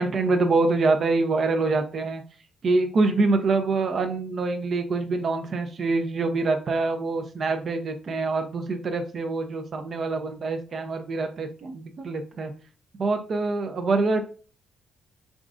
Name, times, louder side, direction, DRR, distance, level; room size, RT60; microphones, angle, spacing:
voice 1, 0.0-2.2 2.6-12.5 13.0-14.2, right 3 dB, 50° right, 6 dB, 0.6 m, -25 dB
3.7 x 3.6 x 2.5 m, 0.38 s
cardioid pair, 90°, 0 cm